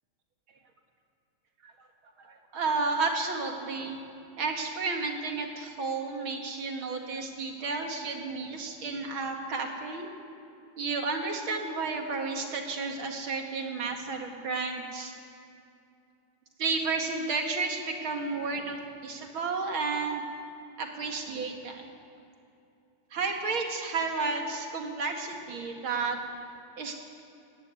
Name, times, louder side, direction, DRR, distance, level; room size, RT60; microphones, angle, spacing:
voice 1, 2.2-4.0 4.4-10.1 10.8-15.1 16.6-18.8 19.0-20.2 20.8-21.8 23.1-26.2 26.8-26.9, right 4 dB, 85° right, 3 dB, 2.8 m, -32 dB
19.0 x 15.0 x 9.6 m, 2.7 s
omnidirectional pair, 2.2 m